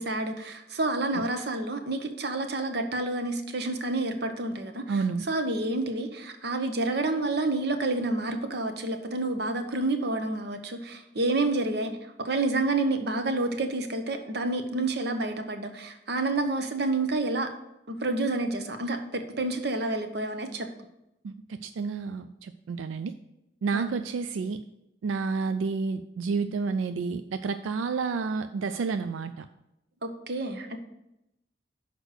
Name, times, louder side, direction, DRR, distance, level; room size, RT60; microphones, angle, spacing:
voice 1, 0.0-11.9 12.2-17.5 17.9-20.7 23.7-23.9 30.0-30.8, right 2 dB, 55° right, 7 dB, 0.8 m, -29 dB
voice 2, 4.9-5.3 21.2-23.1 23.6-24.6 25.0-29.5, right 4 dB, 90° right, 10 dB, 0.3 m, -30 dB
6.3 x 5.1 x 6.5 m, 0.88 s
head